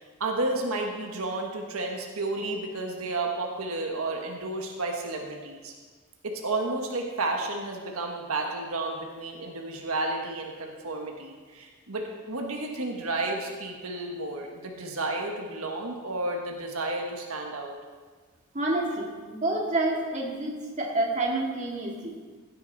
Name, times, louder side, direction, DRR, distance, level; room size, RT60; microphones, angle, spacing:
voice 1, 0.0-5.7 6.2-17.8, right 2 dB, 85° right, 1 dB, 1.5 m, -32 dB
voice 2, 18.5-22.2, right 2 dB, 35° right, -2 dB, 2.0 m, -28 dB
16.0 x 9.3 x 4.0 m, 1.4 s
head